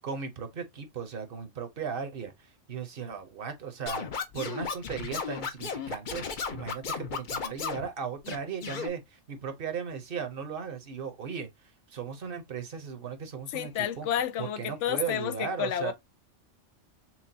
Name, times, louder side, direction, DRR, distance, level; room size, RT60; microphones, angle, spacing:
voice 1, 0.0-11.5 11.9-14.1 14.4-15.9, right 6 dB, 50° right, 1.0 m, -37 dB
Scratching (performance technique), 3.9-7.9 8.2-8.9, left 5 dB, 50° left, 0.7 m, -34 dB
voice 2, 13.5-15.9, left 10 dB, 75° left, 0.9 m, -30 dB
5.9 x 2.3 x 2.7 m
omnidirectional pair, 1.3 m